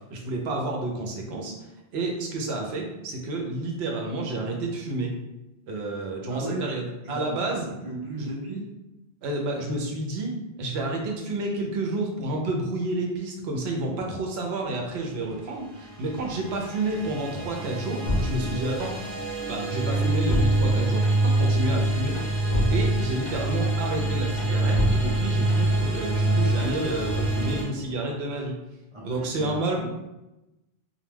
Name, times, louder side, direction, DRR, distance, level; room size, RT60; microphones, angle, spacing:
voice 1, 0.1-1.5 1.9-5.1 5.7-7.7 8.2-8.3 9.2-18.9 19.5-22.2 22.7-28.5 29.0-29.8, right 2 dB, 90° right, 1 dB, 0.8 m, -30 dB
voice 2, 6.3-6.8 7.0-7.4 7.8-8.7 28.9-29.8, right 2 dB, 35° right, -5 dB, 0.6 m, -35 dB
sound 1, 15.4-27.6, right 2 dB, 15° left, 0.9 m, -25 dB
sound 2, 18.1-19.2 19.5-21.4 21.8-23.6 24.0-25.9 26.2-26.8, left 1 dB, 50° left, 0.7 m, -30 dB
2.2 x 2.2 x 3.2 m, 0.98 s
omnidirectional pair, 1.0 m